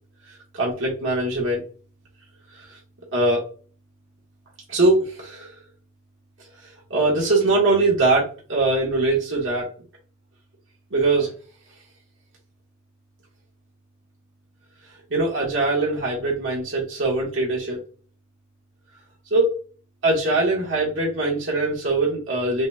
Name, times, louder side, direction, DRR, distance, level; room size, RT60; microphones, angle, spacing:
voice 1, 0.5-1.6 2.5-2.6 3.1-3.4 4.7-5.5 6.9-9.7 10.9-11.3 15.1-17.8 19.3-19.5 20.0-22.7, right 2 dB, 75° right, -4 dB, 1.4 m, -22 dB
5.3 x 2.3 x 2.7 m, 0.38 s
head